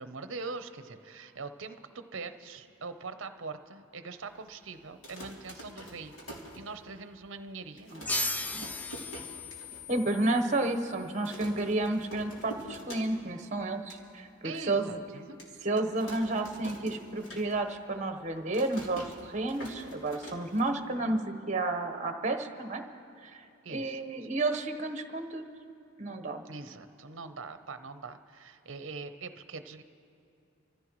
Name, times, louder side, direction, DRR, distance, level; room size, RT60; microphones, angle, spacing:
voice 1, 0.0-7.9 14.4-15.6 23.6-24.0 26.4-29.8, right 4 dB, 60° right, 9 dB, 0.8 m, -43 dB
sound 1, 4.9-7.2 7.5-7.6 7.8-9.8 10.2-10.3 10.5-10.9 11.2-13.4 13.7-14.0 14.5-14.6 15.4-17.8 18.1-21.1, equal, 65° left, 3.1 m, -46 dB
sound 2, 8.1-11.3, left 2 dB, 10° left, 0.3 m, -37 dB
voice 2, 9.9-15.0 15.6-22.8 23.2-25.4 26.0-26.4, right 2 dB, 35° right, 7 dB, 1.1 m, -31 dB
27.0 x 15.0 x 3.1 m, 2.7 s
head